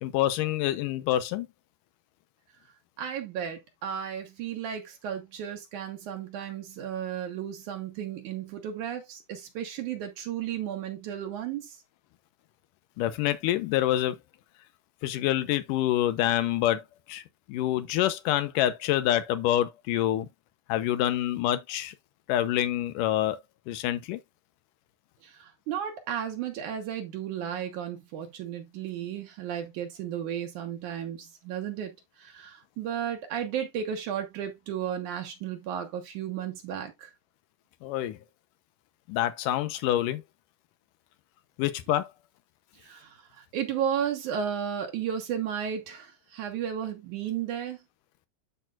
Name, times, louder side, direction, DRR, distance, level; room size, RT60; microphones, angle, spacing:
voice 1, 0.0-1.5 13.0-14.2 15.0-17.2 17.5-20.3 20.7-21.9 22.3-23.4 23.7-24.2 37.8-38.2 39.1-40.2 41.6-42.1, left 13 dB, 90° left, 2.4 m, -26 dB
voice 2, 3.0-11.8 25.2-37.1 42.8-47.8, right 9 dB, 75° right, 2.5 m, -34 dB
12.5 x 4.4 x 2.4 m
omnidirectional pair, 3.7 m